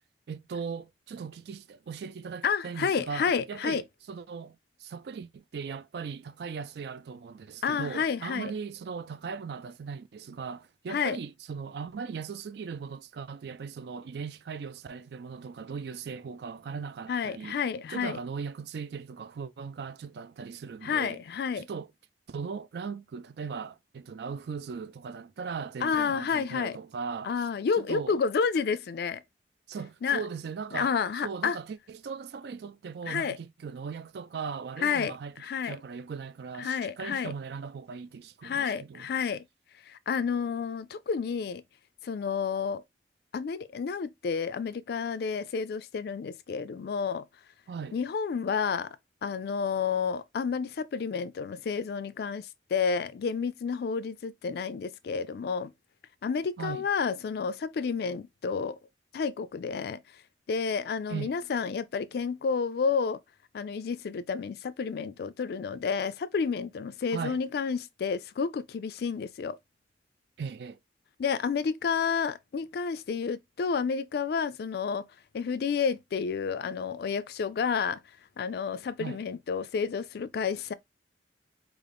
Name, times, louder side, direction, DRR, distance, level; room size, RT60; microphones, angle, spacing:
voice 1, 0.3-17.6 17.9-21.2 21.6-21.9 22.3-27.3 27.8-28.2 29.7-30.9 31.2-39.1 47.7-48.0 56.6-56.9 61.1-61.3 67.1-67.4 70.4-70.8 79.0-79.2, right 5 dB, 65° right, 0.4 m, -38 dB
voice 2, 2.4-3.8 7.6-8.5 10.9-11.2 17.1-18.2 20.8-21.7 25.8-26.8 27.2-29.2 30.0-30.2 30.7-31.6 33.1-33.4 34.8-35.8 36.6-37.3 38.4-39.4 39.9-41.6 42.0-42.8 43.3-47.3 47.9-48.9 49.2-55.7 56.2-58.8 59.1-60.0 60.5-63.2 63.5-69.6 71.2-75.0 75.3-78.0 78.4-80.7, left 6 dB, 60° left, 0.3 m, -30 dB
3.7 x 2.5 x 3.3 m
head